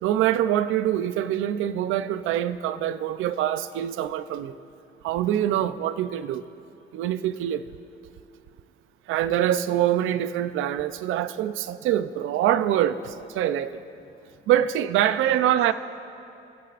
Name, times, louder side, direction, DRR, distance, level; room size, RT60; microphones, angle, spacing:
voice 1, 0.0-4.6 5.0-6.4 6.9-7.6 9.1-13.8 14.5-15.7, right 11 dB, 90° right, 0.6 m, -24 dB
voice 2, 13.9-14.5 14.9-15.7, left 4 dB, 55° left, 3.3 m, -48 dB
27.5 x 15.5 x 2.5 m
cardioid pair, 90°, 20 cm